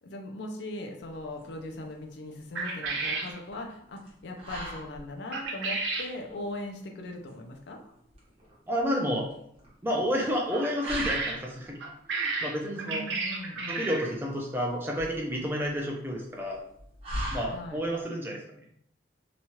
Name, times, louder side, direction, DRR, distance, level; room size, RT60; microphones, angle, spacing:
voice 1, 0.0-7.8 12.8-14.0 17.5-17.8, left 1 dB, 70° left, 2 dB, 0.5 m, -39 dB
sound 1, 1.0-18.0, equal, 30° right, 0.9 m, -43 dB
sound 2, 2.5-3.3 5.3-6.1 10.5-11.4 11.8-14.1, right 3 dB, 80° right, 0.7 m, -32 dB
voice 2, 8.7-9.3 9.8-11.8 12.1-13.0 13.7-16.6 17.3-18.4, equal, 10° right, -1 dB, 0.4 m, -30 dB
3.0 x 2.3 x 2.8 m, 0.72 s
head